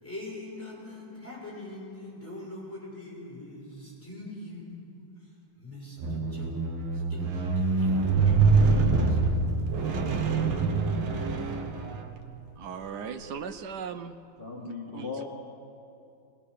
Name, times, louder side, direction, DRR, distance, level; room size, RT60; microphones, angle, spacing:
voice 1, 0.0-5.1 5.6-8.4 8.8-9.4, left 1 dB, 5° left, -6 dB, 6.4 m, -43 dB
Squeak, 6.0-12.4 13.1-13.2, right 4 dB, 90° right, 2.1 m, -25 dB
voice 2, 12.6-14.2 14.6-15.1, right 6 dB, 65° right, 9 dB, 1.1 m, -38 dB
voice 3, 14.4-15.3, left 5 dB, 25° left, -4 dB, 2.0 m, -37 dB
21.5 x 20.0 x 6.6 m, 2.6 s
omnidirectional pair, 2.3 m